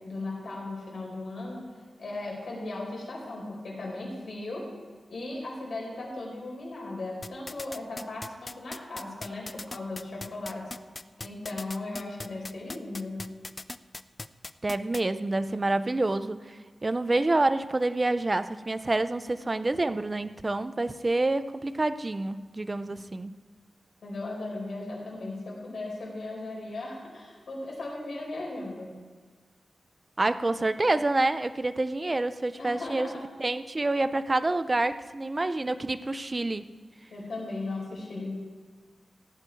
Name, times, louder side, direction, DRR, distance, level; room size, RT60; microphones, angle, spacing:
voice 1, 0.0-1.7 2.0-4.6 5.1-10.7 11.2-13.2 22.8-23.0 24.0-28.9 32.6-33.2 37.1-38.4, left 2 dB, 70° left, -3 dB, 4.5 m, -37 dB
sound 1, 7.2-15.0, left 2 dB, 30° left, 0.4 m, -38 dB
voice 2, 14.6-16.4 16.8-23.4 30.2-33.1 33.4-36.6, right 2 dB, 30° right, 12 dB, 0.5 m, -27 dB
16.0 x 8.8 x 4.6 m, 1.5 s
wide cardioid pair, 100°, 0 cm